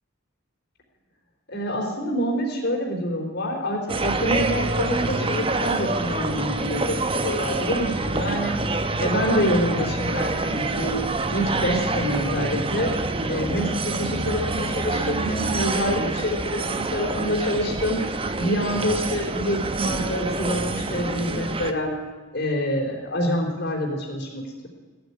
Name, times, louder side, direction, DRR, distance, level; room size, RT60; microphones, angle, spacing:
voice 1, 1.5-8.6 9.0-11.0 11.3-12.9 13.3-18.1 18.4-21.9 22.3-24.7, equal, 55° left, 0 dB, 3.7 m, -26 dB
sound 1, 3.9-21.7, right 2 dB, 25° right, 0.8 m, -27 dB
16.5 x 9.0 x 9.7 m, 1.3 s
head